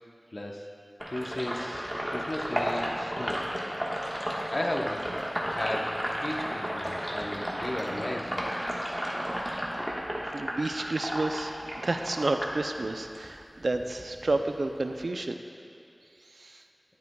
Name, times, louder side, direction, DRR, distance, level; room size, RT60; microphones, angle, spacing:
voice 1, 0.3-0.7 1.1-3.4 4.2-5.1 5.5-8.4, left 1 dB, 50° left, 0 dB, 0.8 m, -35 dB
Sink (filling or washing), 1.0-13.3 13.6-15.0, equal, 5° right, 1.3 m, -33 dB
voice 2, 10.3-15.3 16.4-16.5, right 2 dB, 85° right, 6 dB, 0.4 m, -30 dB
10.5 x 9.3 x 2.3 m, 2.6 s
wide cardioid pair, 55°, 0 cm